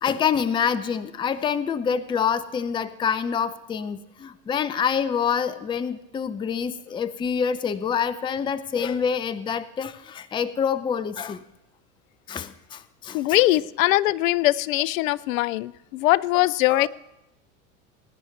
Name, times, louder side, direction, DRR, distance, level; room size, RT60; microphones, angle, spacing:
voice 1, 0.0-11.4 12.3-13.2 16.7-16.9, left 7 dB, 10° left, 15 dB, 0.5 m, -26 dB
voice 2, 13.1-16.9, left 17 dB, 65° left, 21 dB, 0.6 m, -21 dB
21.0 x 10.5 x 3.2 m, 0.92 s
hypercardioid pair, 95°, 44 cm